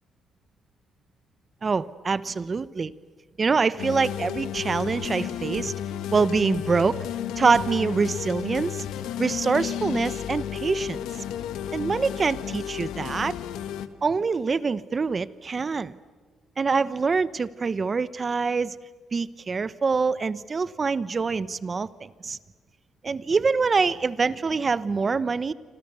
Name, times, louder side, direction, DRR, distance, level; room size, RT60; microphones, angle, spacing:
voice 1, 1.6-2.9 3.4-5.7 6.1-7.1 7.4-8.8 9.2-11.0 11.7-13.3 14.0-16.0 16.6-18.8 19.1-22.4 23.0-25.5, right 4 dB, 35° right, 17 dB, 0.9 m, -25 dB
sound 1, 3.8-13.9, left 10 dB, 90° left, 1.3 m, -32 dB
28.5 x 26.0 x 6.9 m, 1.4 s
cardioid pair, 90°, 0 cm